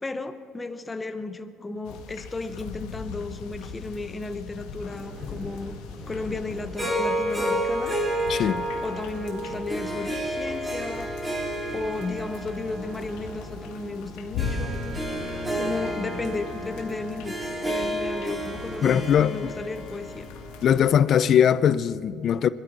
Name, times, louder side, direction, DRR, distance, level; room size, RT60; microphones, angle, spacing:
voice 1, 0.0-5.8 6.1-7.9 8.4-8.5 8.8-11.2 11.7-14.8 15.5-17.4 17.6-20.3, left 3 dB, 15° left, 0.9 m, -34 dB
sound 1, 1.8-20.9, left 5 dB, 85° left, 1.7 m, -40 dB
sound 2, 4.8-19.3, right 3 dB, 30° right, 1.9 m, -46 dB
Harp, 6.8-21.1, equal, 10° right, 2.9 m, -31 dB
voice 2, 8.3-8.7 18.8-19.5 20.6-22.5, left 9 dB, 40° left, 0.5 m, -21 dB
26.5 x 12.5 x 4.1 m
cardioid pair, 145°, 0 cm